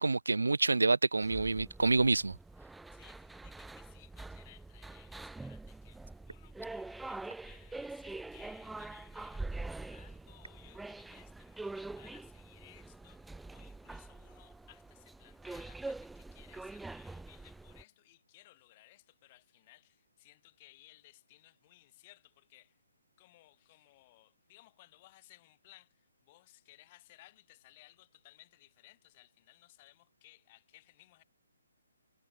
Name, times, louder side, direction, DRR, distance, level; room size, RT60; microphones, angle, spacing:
voice 1, 0.0-2.4, right 3 dB, 80° right, 0.3 m, -27 dB
sound 1, 1.2-17.8, right 2 dB, 5° right, 0.9 m, -45 dB
voice 2, 2.9-22.8 23.2-31.2, left 18 dB, 35° left, 4.6 m, -61 dB
figure-of-eight pair, 140°, 0 cm